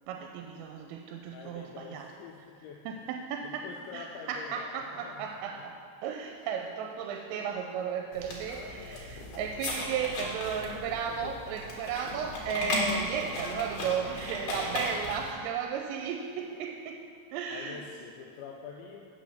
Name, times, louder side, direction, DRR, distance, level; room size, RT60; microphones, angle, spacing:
voice 1, 0.1-2.1 2.9-17.1 17.3-17.8, right 7 dB, 85° right, 4 dB, 3.1 m, -35 dB
voice 2, 1.3-3.1 3.4-5.3 5.6-5.7 8.2-9.4 10.2-11.4 17.5-19.2, left 6 dB, 85° left, 0 dB, 2.6 m, -47 dB
sound 1, 8.1-15.3, left 2 dB, 60° left, 2.3 m, -36 dB
8.4 x 6.8 x 6.2 m, 2.5 s
omnidirectional pair, 5.8 m